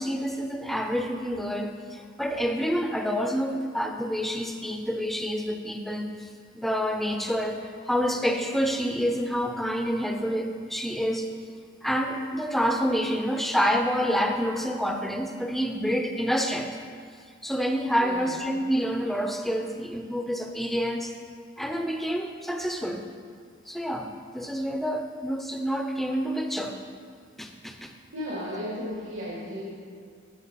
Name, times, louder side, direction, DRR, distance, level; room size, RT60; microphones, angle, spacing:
voice 1, 0.0-6.3 6.5-11.3 11.8-16.8 17.4-21.1 21.6-23.0 23.7-26.7 27.4-27.9, equal, ahead, 4 dB, 0.5 m, -28 dB
voice 2, 18.0-18.3 28.1-29.7, equal, 80° right, -9 dB, 2.5 m, -34 dB
11.5 x 7.2 x 4.1 m, 2.1 s
head